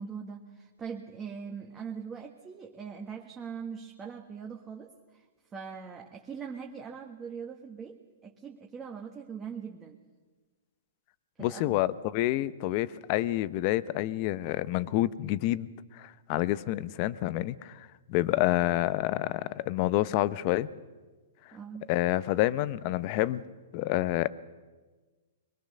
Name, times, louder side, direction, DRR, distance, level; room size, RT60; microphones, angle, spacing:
voice 1, 0.0-5.2 5.5-10.0 11.4-11.8 21.5-21.9, right 6 dB, 15° right, 2 dB, 1.3 m, -41 dB
voice 2, 11.4-20.7 21.9-23.4 23.7-24.3, left 16 dB, 35° left, 17 dB, 0.7 m, -28 dB
22.0 x 22.0 x 6.6 m, 1.3 s
hypercardioid pair, 155°, 0 cm